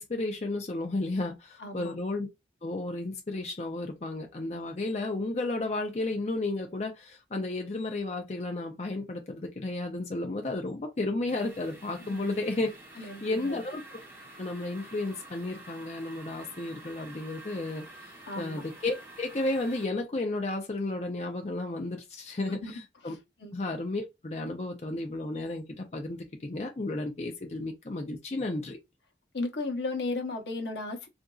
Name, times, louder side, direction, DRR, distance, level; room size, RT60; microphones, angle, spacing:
voice 1, 0.0-2.3 2.6-12.7 13.0-14.0 14.4-23.2 23.5-28.8, left 2 dB, 40° left, 0.5 m, -33 dB
voice 2, 1.6-1.9 12.0-12.3 13.0-13.6 18.3-18.6 22.5-22.7 23.0-23.5 29.3-31.1, left 2 dB, 80° left, 0.8 m, -35 dB
sound 1, 11.3-19.8, right 2 dB, 15° right, 0.9 m, -49 dB
3.8 x 2.6 x 2.3 m
head